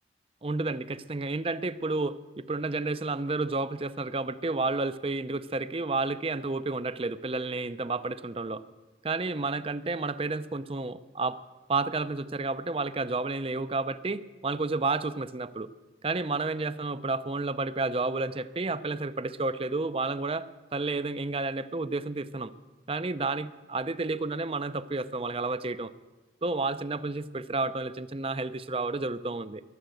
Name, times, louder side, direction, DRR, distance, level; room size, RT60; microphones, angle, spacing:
voice 1, 0.4-8.6 9.0-11.4 11.7-15.7 16.0-22.5 22.9-25.9 26.4-29.6, right 3 dB, 30° right, 14 dB, 0.5 m, -31 dB
22.0 x 8.0 x 7.8 m, 1.2 s
head